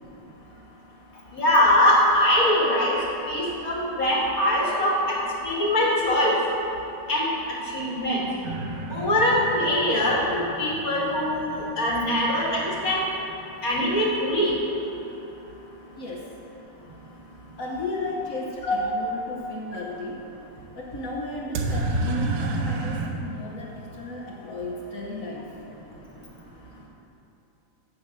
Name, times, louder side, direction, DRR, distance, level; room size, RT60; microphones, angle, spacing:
voice 1, 1.3-3.0 3.3-5.2 5.4-6.4 7.1-8.3 8.9-13.0 13.6-14.5 18.6-18.8, left 1 dB, 45° left, -4 dB, 1.7 m, -22 dB
sound 1, 8.4-14.2 21.5-23.1, right 2 dB, 70° right, 1.4 m, -32 dB
voice 2, 16.0-16.3 17.6-20.3 20.8-25.5, left 2 dB, 75° left, -1 dB, 0.7 m, -34 dB
6.3 x 6.2 x 7.4 m, 3.0 s
omnidirectional pair, 2.4 m